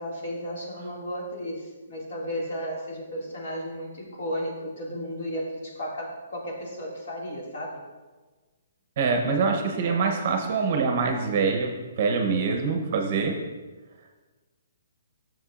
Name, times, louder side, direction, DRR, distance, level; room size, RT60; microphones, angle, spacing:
voice 1, 0.0-7.8, equal, 50° left, -3 dB, 2.1 m, -34 dB
voice 2, 9.0-13.4, right 4 dB, 35° right, 3 dB, 0.8 m, -25 dB
11.5 x 7.2 x 2.5 m, 1.3 s
hypercardioid pair, 175°, 0 cm